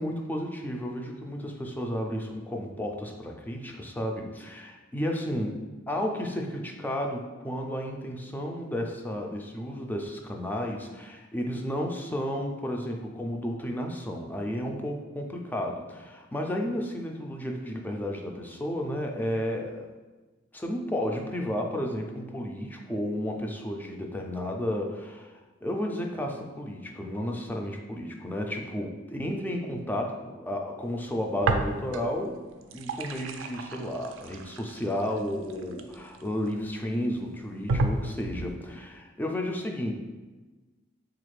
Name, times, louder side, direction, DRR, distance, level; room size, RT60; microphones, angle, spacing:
voice 1, 0.0-5.6 5.9-19.9 20.5-32.4 32.7-39.9, equal, 10° left, 1 dB, 0.3 m, -32 dB
sound 1, 31.4-32.2 32.5-36.5 37.1-37.2 37.7-38.6, right 3 dB, 85° right, 0.3 m, -31 dB
3.9 x 2.4 x 3.1 m, 1.2 s
head